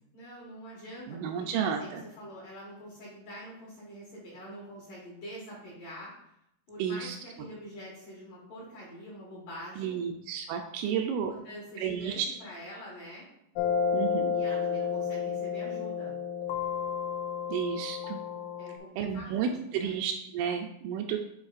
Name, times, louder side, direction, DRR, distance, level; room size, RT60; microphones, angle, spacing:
voice 1, 0.1-6.1 6.7-10.1 10.8-10.9 11.3-13.3 14.3-16.1 18.6-20.0, equal, 60° left, -6 dB, 2.4 m, -45 dB
voice 2, 1.1-2.0 6.8-7.2 9.8-11.3 11.8-12.4 13.9-14.3 17.5-18.2 19.0-21.2, right 7 dB, 85° right, 4 dB, 2.8 m, -32 dB
sound 1, 13.6-18.8, left 7 dB, 85° left, 3.2 m, -31 dB
9.6 x 4.5 x 2.5 m, 0.80 s
omnidirectional pair, 5.7 m